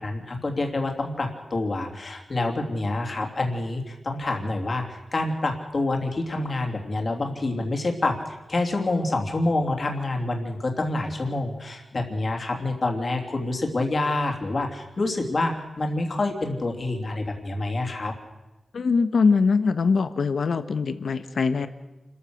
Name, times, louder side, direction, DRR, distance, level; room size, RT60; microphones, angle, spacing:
voice 1, 0.0-18.1, left 2 dB, 40° left, 2 dB, 3.0 m, -27 dB
voice 2, 18.7-21.7, left 4 dB, 70° left, 12 dB, 1.2 m, -22 dB
28.5 x 14.0 x 6.5 m, 1.0 s
wide cardioid pair, 135°, 0 cm